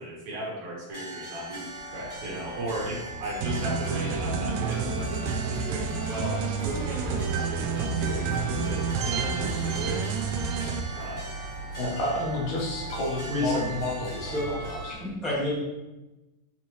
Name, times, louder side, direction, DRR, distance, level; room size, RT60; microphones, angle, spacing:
voice 1, 0.0-10.2 10.6-11.3, right 1 dB, 65° right, -3 dB, 2.5 m, -36 dB
sound 1, 0.9-14.9, right 1 dB, 30° left, 0.3 m, -41 dB
sound 2, 1.6-14.8, right 4 dB, 45° left, 2.1 m, -41 dB
sound 3, 3.4-10.8, right 5 dB, 85° right, 1.5 m, -29 dB
voice 2, 11.8-14.9, left 1 dB, 75° left, -2 dB, 2.7 m, -31 dB
voice 3, 13.2-13.7 14.2-14.5 14.9-15.8, left 1 dB, ahead, -7 dB, 0.7 m, -29 dB
8.3 x 4.3 x 3.0 m, 1.1 s
omnidirectional pair, 3.7 m